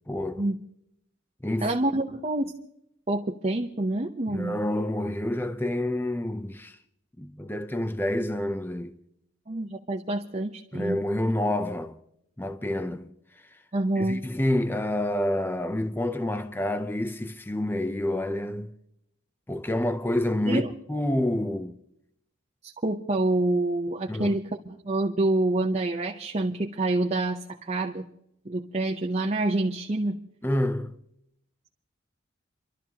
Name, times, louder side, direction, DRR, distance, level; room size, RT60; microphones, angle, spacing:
voice 1, 0.1-0.5 1.4-1.7 4.3-6.8 7.2-8.9 10.7-12.0 12.4-13.1 14.0-18.7 19.5-20.6 20.9-21.8 24.1-24.4 30.4-31.0, left 1 dB, 10° left, 0.5 m, -28 dB
voice 2, 1.6-2.5 3.1-4.6 9.5-11.0 13.7-14.2 20.5-20.7 22.6-28.1 28.5-30.2, right 2 dB, 35° right, 0.8 m, -27 dB
29.5 x 12.5 x 2.9 m
head